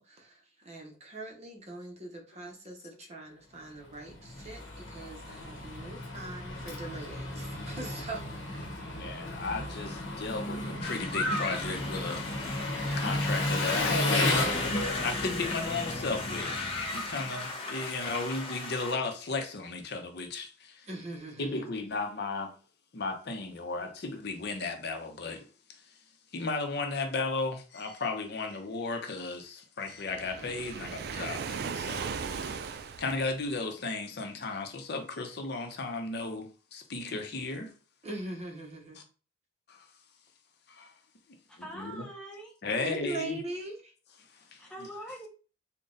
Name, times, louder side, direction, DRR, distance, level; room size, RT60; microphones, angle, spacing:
voice 1, 0.0-8.7 20.8-21.6 38.0-39.0 42.8-43.9, right 2 dB, 35° right, 0.9 m, -42 dB
Engine, 3.9-17.4, left 1 dB, 80° left, 0.9 m, -34 dB
voice 2, 8.9-12.3 13.0-16.6 16.9-20.9 21.4-22.5 22.9-25.9 26.3-32.7 33.0-37.7 38.9-39.0 39.7-39.9 40.7-40.9 41.6-42.1 42.6-43.4 44.3-44.7, left 3 dB, 55° left, 0.7 m, -35 dB
sound 1, 10.8-18.9, left 2 dB, 30° left, 0.9 m, -37 dB
Waves surf, 30.0-33.5, right 6 dB, 55° right, 0.3 m, -37 dB
voice 3, 41.5-42.6 44.6-45.3, right 1 dB, 5° left, 0.9 m, -43 dB
4.0 x 2.2 x 3.8 m
head